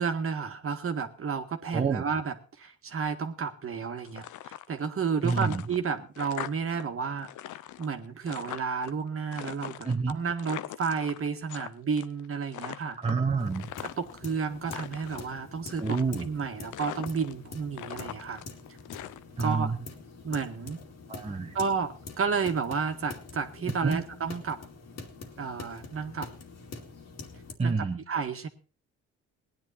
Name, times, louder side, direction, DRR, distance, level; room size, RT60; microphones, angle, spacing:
voice 1, 0.0-7.3 7.8-13.0 13.8-18.4 19.4-19.7 20.2-20.8 21.5-24.6 25.4-26.3 27.6-27.8 28.1-28.5, right 5 dB, 45° right, 6 dB, 1.8 m, -31 dB
voice 2, 1.7-2.0 5.2-5.6 9.8-10.2 13.0-13.7 15.8-16.3 19.4-19.8 21.1-21.5 23.8-24.0 27.6-28.0, right 4 dB, 20° right, 3 dB, 1.2 m, -28 dB
sound 1, 4.0-4.9 5.2-6.8 7.1-8.9 9.3-11.7 12.0-12.3 12.5-14.2 14.6-15.3 15.8-16.4 16.7-17.5 17.7-19.6, left 13 dB, 80° left, 0.7 m, -41 dB
sound 2, 13.4-27.5, left 4 dB, 60° left, 2.4 m, -45 dB
18.0 x 10.5 x 4.3 m, 0.35 s
cardioid pair, 90°, 30 cm